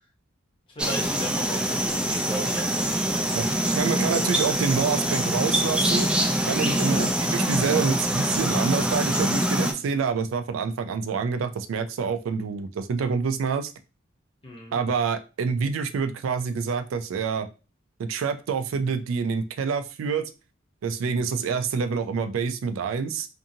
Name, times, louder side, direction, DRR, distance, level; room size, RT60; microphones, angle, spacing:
voice 1, 0.7-3.1 6.8-7.1 14.4-14.8, equal, 25° left, 0 dB, 0.8 m, -35 dB
sound 1, 0.8-9.7, right 1 dB, 5° right, 0.3 m, -24 dB
voice 2, 3.3-6.1 6.5-13.7 14.7-17.5 18.0-20.2 20.8-23.3, right 5 dB, 80° right, 10 dB, 0.3 m, -27 dB
2.6 x 2.5 x 2.7 m, 0.31 s
head